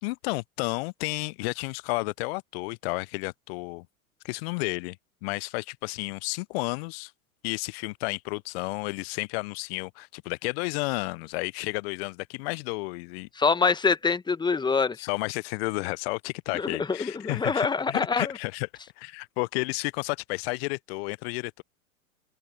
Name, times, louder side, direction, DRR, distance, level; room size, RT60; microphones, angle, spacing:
voice 1, 0.0-3.9 4.2-5.0 5.2-7.1 7.4-13.3 15.0-18.7 19.0-21.6, left 26 dB, 45° left, 0.8 m, -32 dB
voice 2, 13.4-15.0 16.5-18.3, left 5 dB, 10° left, 1.4 m, -25 dB
open air
figure-of-eight pair, 95°, 43 cm